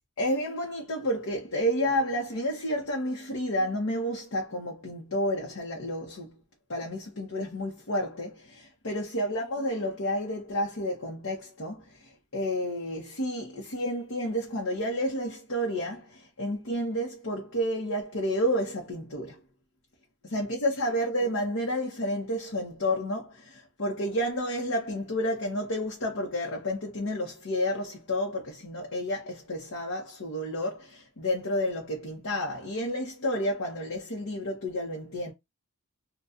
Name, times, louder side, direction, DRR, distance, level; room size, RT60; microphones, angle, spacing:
voice 1, 0.2-6.3 6.7-19.4 20.2-35.3, equal, 65° left, 0.9 m, -30 dB
4.0 x 2.3 x 2.5 m
head